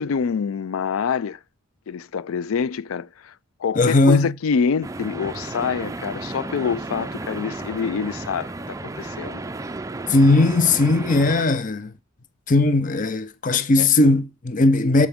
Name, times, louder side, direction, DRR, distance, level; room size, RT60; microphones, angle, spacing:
voice 1, 0.0-1.4 1.9-3.3 3.6-9.4 13.8-13.9, left 6 dB, 85° left, 0.4 m, -26 dB
voice 2, 3.8-4.3 10.1-11.9 12.5-15.1, left 2 dB, 40° left, 0.7 m, -18 dB
sound 1, 4.8-11.4, right 2 dB, 15° right, 0.4 m, -33 dB
13.0 x 4.6 x 3.6 m
head